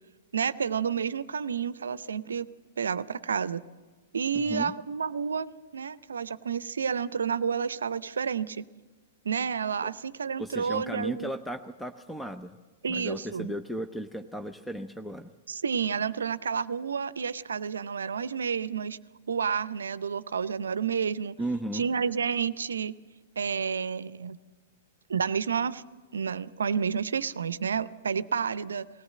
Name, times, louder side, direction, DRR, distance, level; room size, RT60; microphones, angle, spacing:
voice 1, 0.3-2.5 2.8-3.6 4.1-8.6 9.2-11.3 12.8-13.5 15.5-19.0 19.3-21.4 21.7-22.9 23.4-24.4 25.1-25.8 26.1-28.9, right 6 dB, 75° right, 17 dB, 0.6 m, -30 dB
voice 2, 4.3-4.7 9.8-9.9 10.4-12.6 12.9-15.3 21.4-21.8, right 1 dB, 5° left, 8 dB, 0.7 m, -35 dB
19.5 x 17.5 x 7.5 m, 1.4 s
figure-of-eight pair, 105°, 0 cm